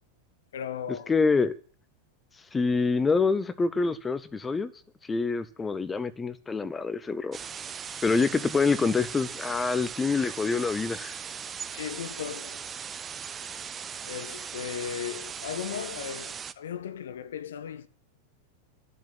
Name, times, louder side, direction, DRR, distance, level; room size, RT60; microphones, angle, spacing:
voice 1, 0.5-1.1 11.7-12.6 14.1-17.9, left 8 dB, 60° left, 0.7 m, -36 dB
voice 2, 1.1-1.5 2.5-4.7 5.1-7.4 8.0-11.1, left 4 dB, 15° left, 0.9 m, -26 dB
sound 1, 7.3-16.5, right 7 dB, 20° right, 0.6 m, -39 dB
11.5 x 7.6 x 9.2 m
figure-of-eight pair, 90°, 0 cm